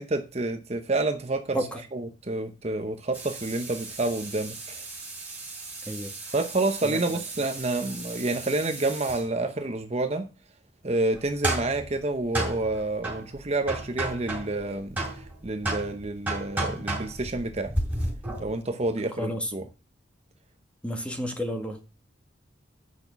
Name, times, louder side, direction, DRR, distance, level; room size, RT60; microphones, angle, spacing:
voice 1, 0.0-1.6 1.9-4.8 6.3-10.3 10.8-17.8 18.4-19.6, right 2 dB, 35° right, 0.9 m, -29 dB
sound 1, 3.1-9.2 11.1-14.7 15.0-18.6, right 1 dB, 10° right, 4.4 m, -34 dB
voice 2, 5.9-6.3 6.8-7.2 19.1-19.5 20.8-21.8, equal, 5° left, 1.9 m, -32 dB
9.5 x 6.0 x 6.0 m
head